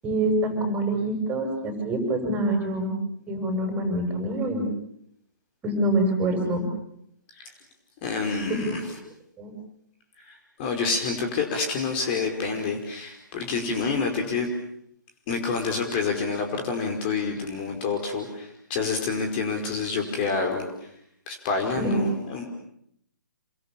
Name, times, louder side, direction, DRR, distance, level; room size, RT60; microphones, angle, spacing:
voice 1, 0.0-3.0 3.3-4.7 5.6-6.6 8.6-8.8 9.4-9.5 21.7-22.0, right 1 dB, 15° right, 5 dB, 7.9 m, -25 dB
voice 2, 8.0-8.8 10.2-14.5 15.3-20.7 21.3-22.5, left 4 dB, 30° left, 3 dB, 5.1 m, -28 dB
28.5 x 25.5 x 7.3 m, 0.72 s
figure-of-eight pair, 135°, 11 cm